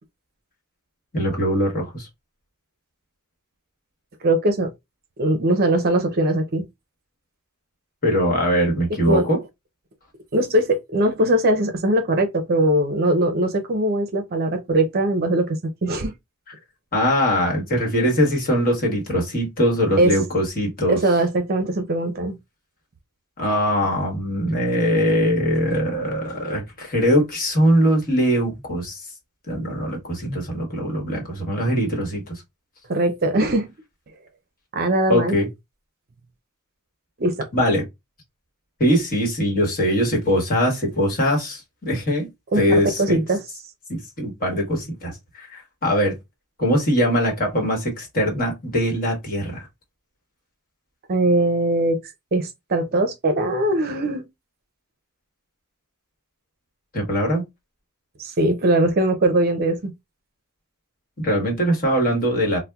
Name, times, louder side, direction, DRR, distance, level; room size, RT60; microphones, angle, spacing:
voice 1, 1.1-2.1 8.0-9.4 16.9-21.0 23.4-29.0 29.5-32.3 35.1-35.5 37.5-37.9 38.8-42.3 42.6-43.2 43.9-46.1 46.6-49.7 56.9-57.4 61.2-62.6, equal, 40° left, 1.2 m, -21 dB
voice 2, 4.2-4.7 5.2-6.6 9.1-9.3 10.3-15.5 15.8-16.1 20.0-20.1 20.9-22.4 32.9-33.7 34.7-35.4 37.2-37.5 42.5-43.4 51.1-52.0 52.3-54.2 58.2-59.9, right 1 dB, 45° right, 0.6 m, -21 dB
4.2 x 2.1 x 2.3 m
head